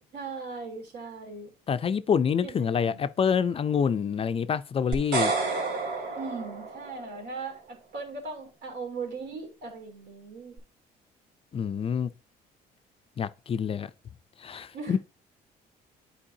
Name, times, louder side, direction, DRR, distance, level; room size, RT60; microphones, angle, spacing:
voice 1, 0.1-1.5 2.4-3.0 6.1-10.6 14.7-15.0, right 4 dB, 70° right, 3.4 m, -39 dB
voice 2, 1.7-5.3 11.5-12.1 13.2-13.9 14.4-15.0, left 7 dB, 35° left, 0.4 m, -26 dB
sound 1, 4.9-7.2, right 4 dB, 85° right, 2.7 m, -30 dB
10.0 x 4.6 x 2.7 m
cardioid pair, 110°, 17 cm